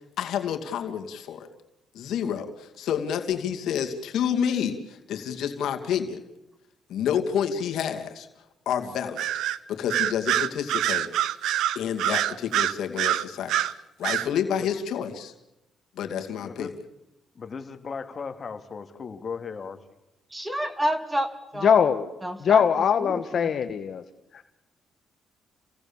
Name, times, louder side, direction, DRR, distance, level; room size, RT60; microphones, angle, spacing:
voice 1, 0.2-1.5 1.9-6.2 6.9-8.3 8.7-9.2 9.7-11.1 11.7-13.6 14.0-15.3 16.0-16.7, left 8 dB, 75° left, 2.5 m, -29 dB
Bird vocalization bird call bird song, 9.2-9.6 9.9-13.7 14.0-14.3, right 12 dB, 85° right, 0.9 m, -25 dB
voice 2, 16.4-16.7 17.3-19.8, left 5 dB, 40° left, 2.5 m, -36 dB
voice 3, 20.3-21.9 22.2-22.6 23.1-23.5, equal, 10° right, 3.0 m, -29 dB
voice 4, 21.6-22.1 22.4-24.0 24.3-24.4, left 7 dB, 60° left, 1.3 m, -21 dB
29.5 x 17.5 x 7.2 m
cardioid pair, 90°, 0 cm